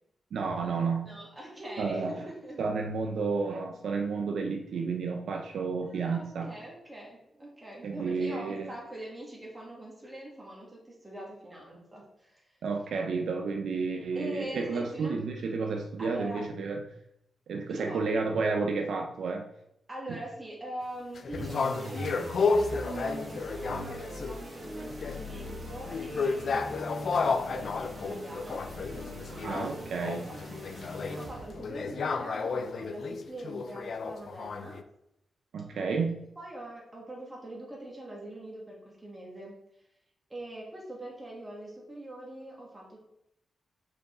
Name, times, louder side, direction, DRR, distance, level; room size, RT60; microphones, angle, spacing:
voice 1, 0.3-1.2 1.8-2.2 2.6-6.6 7.8-8.7 12.6-16.8 17.5-19.5 29.4-30.3 35.5-36.3, right 4 dB, 80° right, 3 dB, 0.6 m, -31 dB
voice 2, 1.0-2.6 5.9-12.6 14.1-15.2 16.0-16.4 17.7-18.0 19.9-30.4 30.7-34.8 35.7-36.1 36.4-39.6 40.3-43.0, right 1 dB, 20° right, -3 dB, 2.0 m, -43 dB
sound 1, 21.2-24.5 24.8-34.8, left 4 dB, 60° left, 0.5 m, -32 dB
sound 2, 21.3-31.7, equal, 45° right, 1.5 m, -41 dB
5.4 x 5.0 x 3.8 m, 0.79 s
cardioid pair, 95°, 0 cm